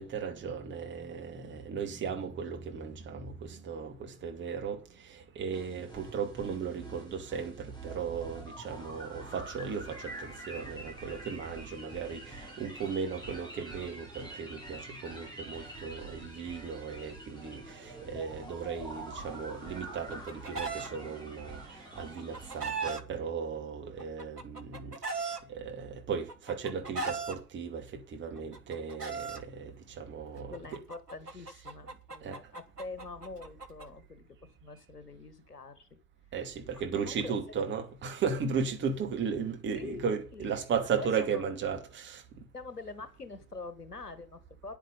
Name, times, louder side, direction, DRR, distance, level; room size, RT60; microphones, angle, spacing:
voice 1, 0.0-4.8 5.1-21.6 22.0-27.8 28.1-30.8 32.2-32.4 36.3-42.2, right 6 dB, 25° right, 2.4 m, -36 dB
sound 1, 5.5-22.9, right 1 dB, 10° left, 5.6 m, -46 dB
Chicken rooster, 19.8-20.9 22.0-23.0 24.0-25.4 26.3-27.4 28.4-29.4 30.5-33.9, right 4 dB, 90° right, 1.2 m, -37 dB
voice 2, 30.5-36.0 36.7-37.3 39.7-40.0 40.3-40.5 40.9-41.4 42.5-44.8, left 3 dB, 85° left, 1.6 m, -45 dB
9.9 x 9.1 x 5.3 m
figure-of-eight pair, 90°, 46 cm